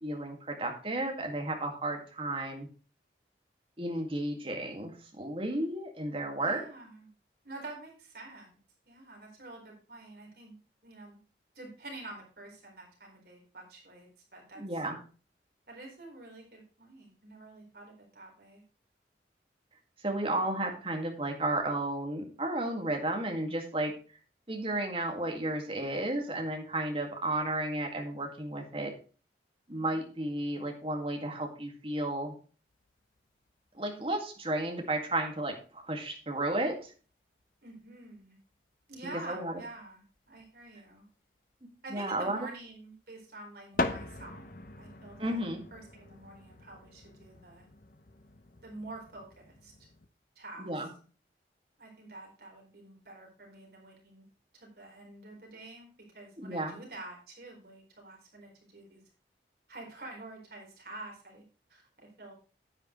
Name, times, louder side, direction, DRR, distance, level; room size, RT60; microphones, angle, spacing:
voice 1, 0.0-2.7 3.8-6.6 14.6-15.0 20.0-23.9 24.5-28.9 29.7-32.3 33.7-36.9 39.3-39.5 41.6-42.4 45.2-45.6 50.6-50.9 56.4-56.8, right 1 dB, 30° right, 3 dB, 2.0 m, -33 dB
voice 2, 6.4-7.1 7.4-8.5 8.9-10.5 10.8-11.2 11.5-14.8 15.7-18.6 29.7-30.0 37.6-38.4 38.9-41.0 41.8-44.5 44.8-45.4 45.7-47.7 48.6-49.7 50.4-50.7 51.8-54.2 54.5-59.0 59.7-61.4 61.7-62.3, right 2 dB, 60° right, 0 dB, 4.1 m, -48 dB
sound 1, 32.7-33.5 33.7-34.2 35.2-35.3 35.5-35.6 36.1-36.2 37.1-37.2 37.4-37.5 38.2-38.3 38.5-38.6 38.8-38.9 40.1-40.9 43.7-50.1, left 2 dB, 50° left, 0.8 m, -40 dB
9.8 x 9.2 x 3.1 m, 0.37 s
head